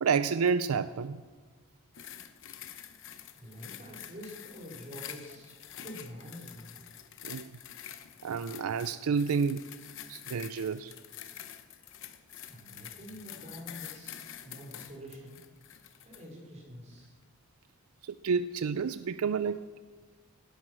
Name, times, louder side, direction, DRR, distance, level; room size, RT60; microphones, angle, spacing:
voice 1, 0.0-1.2 7.2-7.5 8.2-9.7 10.1-10.9 18.0-19.6, right 5 dB, 75° right, 14 dB, 0.4 m, -29 dB
sound 1, 1.9-16.3 16.9-17.1, left 10 dB, 55° left, 0.9 m, -47 dB
voice 2, 3.4-5.5 5.8-6.7 12.5-15.4 16.0-17.1, equal, 30° right, -1 dB, 3.7 m, -47 dB
17.5 x 10.5 x 6.2 m, 1.5 s
head